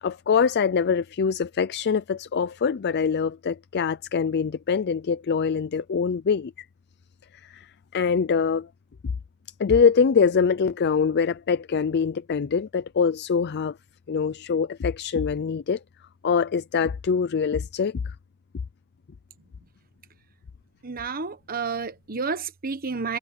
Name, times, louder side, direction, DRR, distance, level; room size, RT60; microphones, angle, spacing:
voice 1, 0.0-6.5 7.4-7.7 7.9-8.7 9.6-13.8 14.1-15.8 16.2-18.1, left 6 dB, 50° left, 0.4 m, -24 dB
voice 2, 20.8-23.2, right 4 dB, 40° right, 1.2 m, -30 dB
head